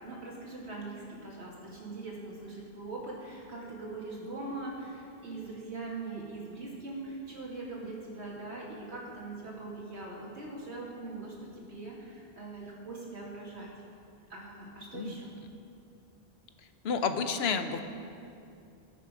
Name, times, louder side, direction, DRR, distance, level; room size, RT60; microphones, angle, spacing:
voice 1, 0.0-13.7 14.3-15.3, right 3 dB, 85° right, -4 dB, 2.6 m, -41 dB
voice 2, 16.8-17.8, left 5 dB, 75° left, 8 dB, 1.0 m, -30 dB
18.5 x 6.8 x 5.0 m, 2.6 s
omnidirectional pair, 1.1 m